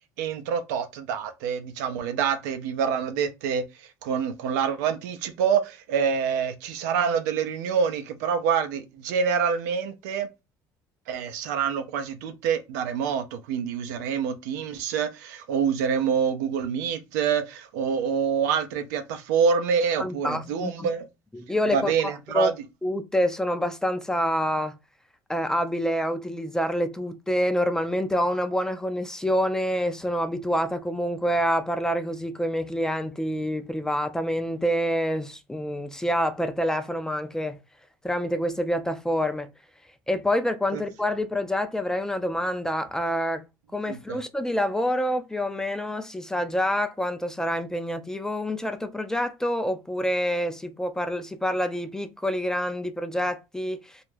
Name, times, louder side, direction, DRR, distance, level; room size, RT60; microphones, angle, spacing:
voice 1, 0.2-10.3 11.1-21.1 21.7-22.5 40.7-40.8 43.9-44.2, right 7 dB, 85° right, 0.5 m, -26 dB
voice 2, 20.0-20.9 21.3-22.5 22.8-24.8 25.3-37.6 38.0-39.5 40.1-43.4 43.7-54.0, equal, 5° left, 0.4 m, -27 dB
2.3 x 2.1 x 3.1 m
supercardioid pair, 100°, 9 cm